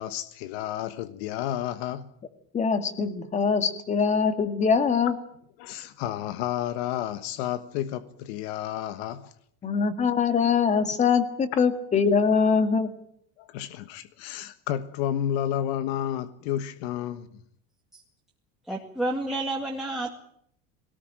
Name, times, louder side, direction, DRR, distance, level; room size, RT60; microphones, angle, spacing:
voice 1, 0.0-2.1 5.6-9.3 11.5-11.6 13.4-17.3, left 11 dB, 75° left, 1.4 m, -31 dB
voice 2, 2.5-5.1 9.6-12.9, left 5 dB, 20° left, 2.0 m, -23 dB
voice 3, 18.7-20.2, right 2 dB, ahead, 2.1 m, -30 dB
21.0 x 18.5 x 9.0 m
cardioid pair, 155°, 32 cm